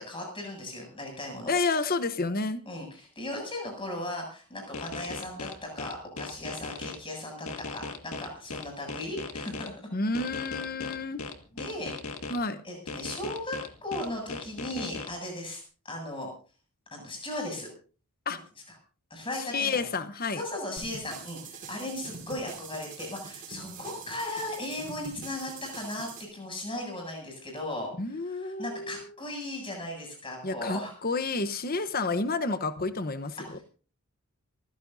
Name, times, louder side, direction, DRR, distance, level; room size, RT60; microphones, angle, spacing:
voice 1, 0.0-1.5 2.7-9.7 11.5-11.9 12.6-16.3 16.9-17.7 18.7-18.8 19.1-19.8 20.4-30.9 33.4-33.6, left 1 dB, 25° left, 2 dB, 7.6 m, -37 dB
voice 2, 1.5-2.6 9.9-11.2 12.3-12.6 18.3-18.4 19.5-20.4 28.0-29.1 30.4-33.6, left 3 dB, 40° left, 12 dB, 1.0 m, -30 dB
sound 1, 4.7-7.0 7.5-9.7 10.1-12.4 12.9-15.1, left 4 dB, 70° left, 1.9 m, -37 dB
sound 2, 20.8-26.2, right 5 dB, 40° right, 5.5 m, -44 dB
27.0 x 15.5 x 2.7 m, 0.39 s
head